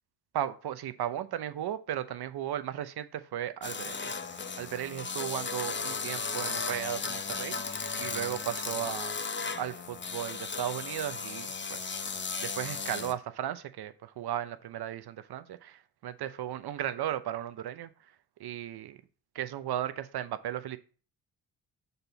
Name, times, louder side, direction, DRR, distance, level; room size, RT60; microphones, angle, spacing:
voice 1, 0.3-9.1 9.6-18.1 18.4-19.0 19.3-20.8, right 11 dB, 55° right, 0.7 m, -36 dB
sound 1, 3.6-13.2, left 5 dB, 25° left, 0.8 m, -36 dB
6.7 x 4.0 x 5.7 m
supercardioid pair, 50°, 45 cm